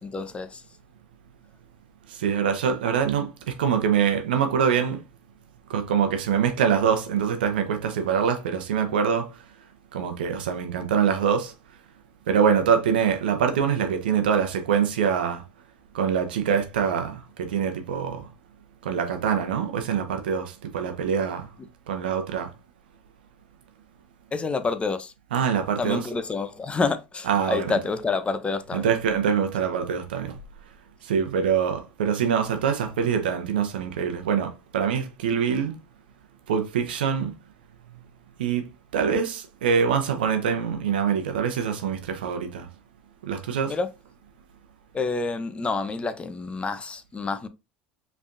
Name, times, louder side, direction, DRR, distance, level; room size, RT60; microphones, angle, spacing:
voice 1, 0.0-0.6 24.3-25.1 25.8-28.9 43.7-43.9 44.9-47.5, left 4 dB, 20° left, 0.7 m, -28 dB
voice 2, 2.1-5.0 5.7-9.3 9.9-11.5 12.3-15.4 15.9-18.3 18.8-21.5 21.9-22.5 25.3-26.0 27.3-27.8 28.7-30.4 31.0-35.7 36.5-37.3 38.4-42.7 43.3-43.7, right 7 dB, 80° right, 0.8 m, -24 dB
5.1 x 3.4 x 2.6 m
hypercardioid pair, 80°, 5 cm